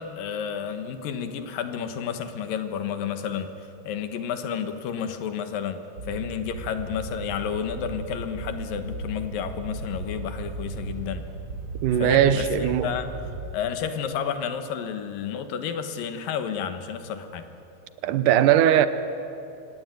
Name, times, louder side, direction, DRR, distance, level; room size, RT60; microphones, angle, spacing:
voice 1, 0.0-11.3 12.0-12.5 12.8-13.1 13.5-17.5, left 8 dB, 90° left, 8 dB, 3.1 m, -31 dB
sound 1, 6.0-13.5, right 2 dB, 40° right, 1.9 m, -36 dB
voice 2, 11.8-12.9 18.0-18.9, right 10 dB, 75° right, 12 dB, 2.3 m, -19 dB
25.5 x 18.0 x 9.4 m, 2.8 s
omnidirectional pair, 3.8 m